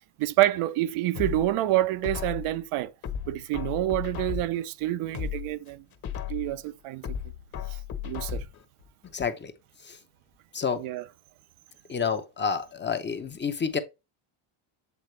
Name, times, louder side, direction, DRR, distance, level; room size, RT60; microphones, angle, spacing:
voice 1, 0.2-2.9 3.3-5.8 6.3-7.0 8.0-8.4 10.8-11.1, right 15 dB, 80° right, 0.7 m, -27 dB
sound 1, 1.1-2.6 3.0-4.6 5.0-6.6 7.0-8.6 9.0-9.1, left 8 dB, 45° left, 1.3 m, -35 dB
voice 2, 9.1-9.5 9.8-10.0 10.5-10.8 11.9-13.8, left 6 dB, 20° left, 0.7 m, -29 dB
8.0 x 3.9 x 3.2 m
cardioid pair, 135°, 50 cm